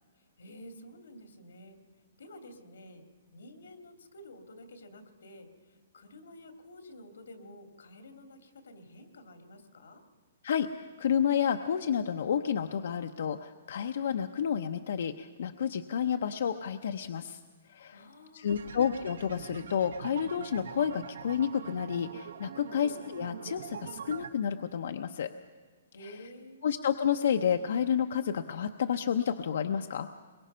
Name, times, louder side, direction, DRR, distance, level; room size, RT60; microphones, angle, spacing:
voice 1, 0.2-1.8 2.2-3.0 3.3-10.0 17.9-18.8 22.6-22.8 25.9-26.7, left 1 dB, 90° left, 5 dB, 2.7 m, -51 dB
voice 2, 10.4-17.4 17.7-18.0 18.3-25.3 26.6-30.1, left 8 dB, 60° left, 7 dB, 0.7 m, -30 dB
sound 1, 18.5-24.3, right 7 dB, 80° right, 1.4 m, -44 dB
23.0 x 22.0 x 5.6 m, 1.5 s
hypercardioid pair, 170°, 0 cm